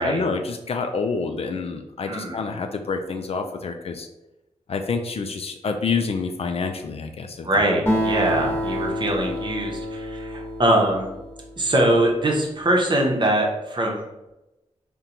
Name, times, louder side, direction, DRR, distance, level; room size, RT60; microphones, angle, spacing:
voice 1, 0.0-4.1 4.7-7.5, left 4 dB, 55° left, 5 dB, 0.3 m, -27 dB
voice 2, 2.0-2.4 7.4-11.1 11.6-14.0, right 1 dB, 40° right, 0 dB, 0.8 m, -22 dB
Acoustic guitar, 7.9-11.7, equal, 20° left, 1.2 m, -28 dB
3.8 x 2.2 x 2.8 m, 0.96 s
cardioid pair, 60°, 12 cm